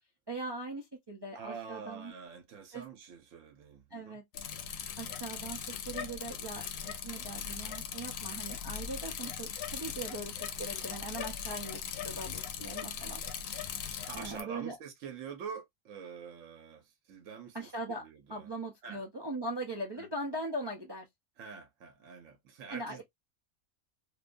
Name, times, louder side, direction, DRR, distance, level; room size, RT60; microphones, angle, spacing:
voice 1, 0.3-2.1 2.7-2.8 3.9-4.2 5.0-13.2 14.1-14.7 17.5-18.0 18.3-21.1 22.7-23.0, right 2 dB, 40° right, 0.3 m, -40 dB
voice 2, 1.3-4.2 12.0-12.1 14.1-18.5 18.8-19.0 20.0-20.1 21.4-23.0, right 6 dB, 80° right, 1.1 m, -46 dB
Bicycle, 4.3-14.4, left 8 dB, 85° left, 1.0 m, -39 dB
2.7 x 2.3 x 2.4 m
omnidirectional pair, 1.4 m